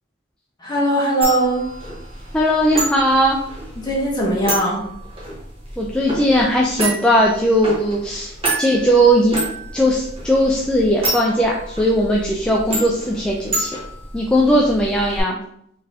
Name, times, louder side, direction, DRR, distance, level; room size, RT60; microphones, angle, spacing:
voice 1, 0.6-1.7 3.8-4.8, right 1 dB, 20° left, -4 dB, 1.3 m, -20 dB
sound 1, 1.2-15.2, right 2 dB, 30° right, 1.2 m, -29 dB
voice 2, 2.3-3.4 5.8-8.3 8.6-9.4 9.7-13.7 14.1-15.4, equal, 5° left, -2 dB, 0.4 m, -18 dB
3.9 x 3.7 x 2.8 m, 0.71 s
head